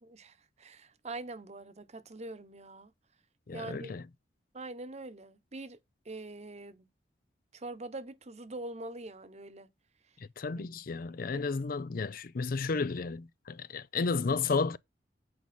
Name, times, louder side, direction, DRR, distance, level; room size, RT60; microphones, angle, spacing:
voice 1, 0.0-2.9 3.5-3.9 4.5-5.8 6.1-6.8 7.5-9.7 10.6-10.7 11.3-11.5, right 2 dB, 40° right, 1.1 m, -43 dB
voice 2, 3.5-4.1 10.2-14.8, left 4 dB, 55° left, 0.5 m, -32 dB
8.7 x 5.3 x 6.0 m
head